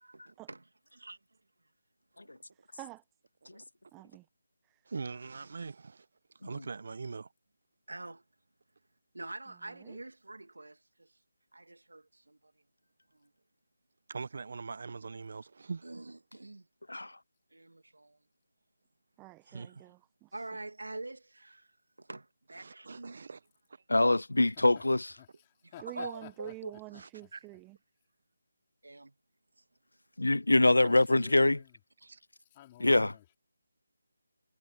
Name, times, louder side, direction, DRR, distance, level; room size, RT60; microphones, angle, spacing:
voice 1, 2.5-3.0 3.9-4.3 4.6-4.8 9.5-10.0 19.2-20.5 25.8-27.8, right 23 dB, 15° right, 1.1 m, -48 dB
voice 2, 4.9-6.1 6.3-7.3 14.1-15.9 19.5-19.9 22.6-23.4 23.7-23.8 26.9-27.4 32.1-32.2, right 4 dB, 55° right, 0.9 m, -42 dB
voice 3, 7.9-8.2 9.1-11.1 11.5-12.5 13.1-13.3 15.8-16.7 17.5-18.2 20.3-21.7 22.0-23.2 25.9-26.7 28.8-29.1 32.0-32.1, right 2 dB, 80° right, 2.2 m, -45 dB
voice 4, 23.9-25.1 30.2-31.6 32.8-33.1, left 2 dB, 80° left, 0.3 m, -24 dB
voice 5, 25.2-26.5 26.9-27.0 30.8-31.8 32.5-33.4, left 14 dB, 20° left, 4.1 m, -52 dB
figure-of-eight pair, 160°, 0 cm